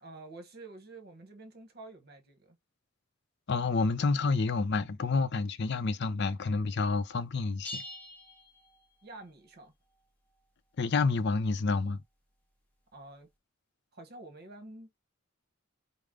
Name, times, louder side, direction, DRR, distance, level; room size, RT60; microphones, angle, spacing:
voice 1, 0.0-2.6 9.0-9.7 12.9-13.3 13.9-15.0, right 2 dB, 50° right, 1.1 m, -49 dB
voice 2, 3.5-7.8 10.8-12.0, left 4 dB, 55° left, 0.5 m, -29 dB
sound 1, 7.6-9.2, left 1 dB, 5° left, 0.8 m, -44 dB
5.0 x 2.1 x 3.7 m
head